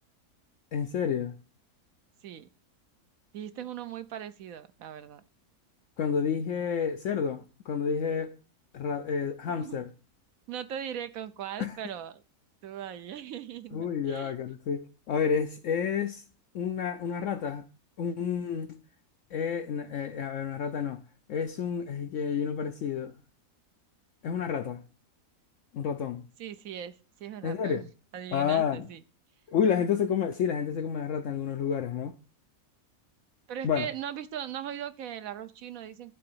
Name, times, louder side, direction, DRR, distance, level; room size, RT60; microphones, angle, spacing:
voice 1, 0.7-1.4 6.0-8.3 8.7-9.9 11.6-11.7 13.7-16.2 16.5-17.6 18.0-18.8 19.3-21.0 21.3-23.1 24.2-24.8 25.7-26.3 27.4-27.8 28.3-28.9 29.5-32.2 33.6-33.9, left 7 dB, 65° left, 0.9 m, -30 dB
voice 2, 3.3-5.2 9.4-9.8 10.5-12.2 12.6-14.3 26.4-27.9 28.1-29.0 33.5-36.2, right 9 dB, 70° right, 1.1 m, -39 dB
11.5 x 3.9 x 7.7 m
omnidirectional pair, 1.5 m